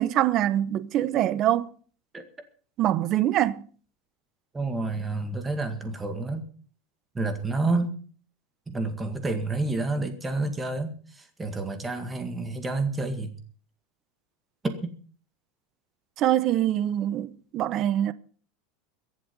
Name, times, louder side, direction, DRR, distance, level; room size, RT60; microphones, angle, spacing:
voice 1, 0.0-1.7 2.8-3.6 16.2-18.1, right 12 dB, 35° right, 0.8 m, -24 dB
voice 2, 4.5-6.5 7.1-8.0 8.7-13.3 14.8-14.9, right 3 dB, 10° right, 1.9 m, -29 dB
23.0 x 7.7 x 5.4 m
supercardioid pair, 170°, 0 cm